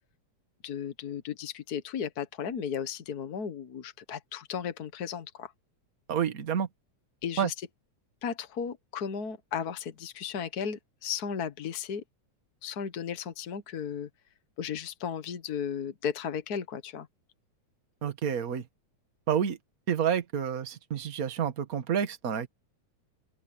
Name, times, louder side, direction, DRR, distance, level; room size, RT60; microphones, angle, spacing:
voice 1, 0.6-5.5 7.2-7.7 8.2-12.0 12.6-14.1 14.6-17.1, left 7 dB, 55° left, 1.1 m, -35 dB
voice 2, 6.1-6.7 7.4-7.5 18.0-18.6 19.3-19.6 19.9-22.5, right 8 dB, 35° right, 1.5 m, -29 dB
open air
omnidirectional pair, 3.4 m